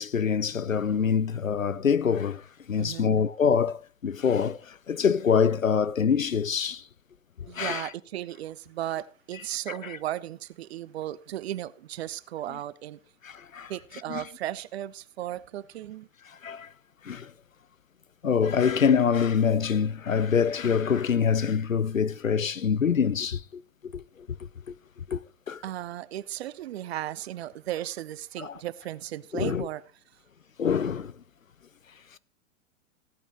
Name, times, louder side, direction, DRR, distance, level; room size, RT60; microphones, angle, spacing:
voice 1, 0.0-2.4 2.7-6.8 7.6-7.9 9.7-10.0 13.2-13.7 14.1-14.2 16.4-16.7 17.0-17.3 18.2-24.0 25.1-25.2 25.5-25.6 28.4-28.5 29.3-29.7 30.6-31.1, left 6 dB, 90° left, 0.6 m, -25 dB
voice 2, 2.8-3.2 7.5-13.0 13.7-16.1 25.6-29.8, right 13 dB, 55° right, 0.8 m, -35 dB
15.5 x 8.9 x 3.2 m
figure-of-eight pair, 100°, 39 cm